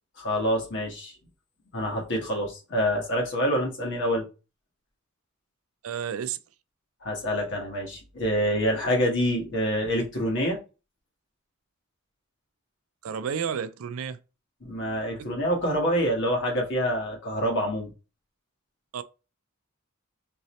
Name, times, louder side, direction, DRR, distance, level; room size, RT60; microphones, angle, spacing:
voice 1, 0.2-1.1 1.7-4.2 7.0-10.6 14.6-17.9, equal, 60° left, 1.4 m, -26 dB
voice 2, 5.8-6.4 13.0-14.2 15.2-15.3 18.9-19.0, right 7 dB, 70° right, 0.4 m, -31 dB
3.7 x 2.8 x 3.0 m
head